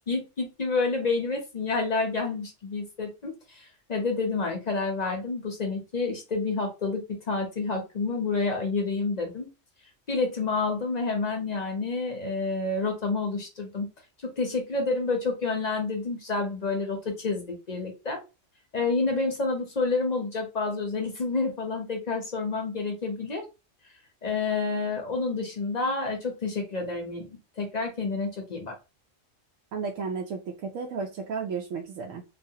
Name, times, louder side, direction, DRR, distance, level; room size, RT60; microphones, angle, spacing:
voice 1, 0.1-9.5 10.1-13.9 14.4-18.2 18.7-23.4 24.2-28.7, left 3 dB, 40° left, 2 dB, 0.6 m, -29 dB
voice 2, 29.7-32.2, right 5 dB, 85° right, 0 dB, 1.0 m, -33 dB
3.1 x 2.1 x 2.7 m, 0.28 s
omnidirectional pair, 1.3 m